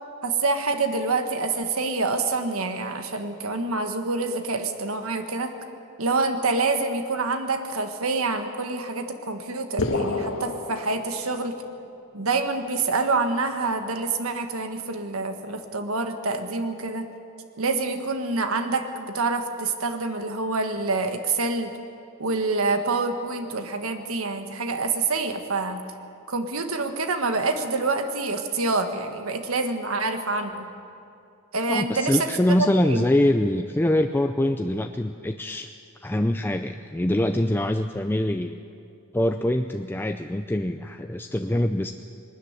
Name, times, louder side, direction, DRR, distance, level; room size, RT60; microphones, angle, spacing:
voice 1, 0.2-5.5 6.0-11.6 12.1-17.1 17.6-21.7 22.2-25.8 26.3-30.7 31.5-32.3 32.6-33.0, right 3 dB, 85° right, 7 dB, 1.6 m, -26 dB
sound 1, 9.8-11.7, left 2 dB, 80° left, 1.7 m, -29 dB
voice 2, 31.7-35.7 36.0-38.6 39.1-41.9, left 1 dB, 10° left, 6 dB, 0.4 m, -24 dB
21.0 x 13.0 x 9.6 m, 2.5 s
head